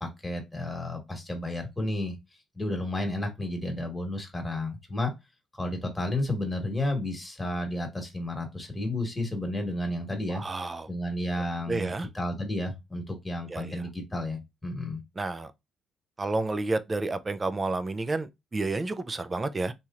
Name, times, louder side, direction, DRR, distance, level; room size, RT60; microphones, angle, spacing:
voice 1, 0.0-5.1 5.5-15.0, left 1 dB, 15° left, 1.2 m, -32 dB
voice 2, 10.3-10.9 11.7-12.1 13.5-13.8 15.2-15.5 16.2-19.7, right 3 dB, 25° right, 0.4 m, -30 dB
3.0 x 2.8 x 2.4 m
cardioid pair, 90°, 0 cm